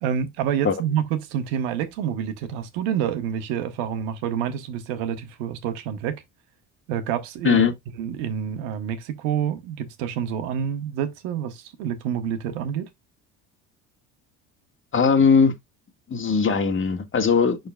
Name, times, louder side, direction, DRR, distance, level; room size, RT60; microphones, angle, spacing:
voice 1, 0.0-6.2 6.9-7.6 8.0-12.9, right 9 dB, 80° right, 1.3 m, -27 dB
voice 2, 14.9-15.5 16.1-17.6, left 6 dB, 30° left, 1.8 m, -19 dB
11.5 x 4.0 x 2.3 m
hypercardioid pair, 75°, 38 cm